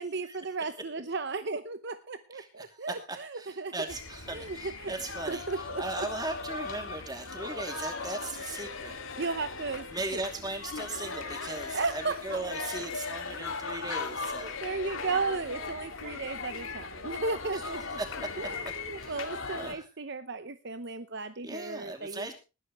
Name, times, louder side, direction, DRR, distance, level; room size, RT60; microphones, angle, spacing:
voice 1, 0.0-3.9 4.3-4.9 5.3-6.1 9.2-9.9 10.1-10.2 11.7-12.7 14.3-18.0 18.4-22.3, right 4 dB, 50° right, 11 dB, 0.8 m, -35 dB
voice 2, 3.4-5.4 5.8-9.0 9.9-14.6 18.0-18.1 19.0-19.2 19.6-19.8 21.4-22.3, right 2 dB, 20° right, 5 dB, 2.7 m, -38 dB
sound 1, 3.9-19.8, left 4 dB, 65° left, 2.2 m, -38 dB
20.0 x 11.5 x 3.1 m, 0.31 s
head